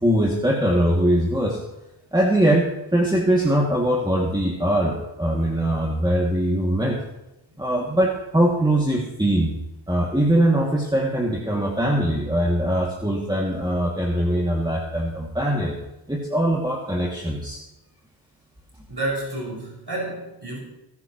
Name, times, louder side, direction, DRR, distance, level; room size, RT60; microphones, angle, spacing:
voice 1, 0.0-1.6 2.1-7.0 7.6-9.5 9.9-15.8 16.1-17.6, right 1 dB, 10° right, -3 dB, 2.4 m, -22 dB
voice 2, 18.9-20.6, right 2 dB, 50° right, -4 dB, 6.1 m, -30 dB
20.5 x 11.5 x 3.1 m, 0.96 s
wide cardioid pair, 50°, 49 cm